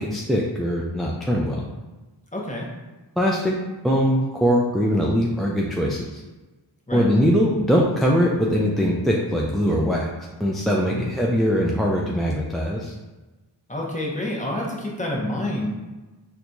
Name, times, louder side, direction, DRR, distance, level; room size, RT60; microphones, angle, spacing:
voice 1, 0.0-1.6 3.2-3.6 3.8-6.2 6.9-10.1 10.4-12.9, equal, ahead, -3 dB, 0.3 m, -21 dB
voice 2, 2.3-2.7 6.9-7.1 10.8-11.1 13.7-15.7, left 1 dB, 15° left, -3 dB, 0.8 m, -28 dB
4.3 x 2.3 x 2.6 m, 1.2 s
wide cardioid pair, 40°, 45 cm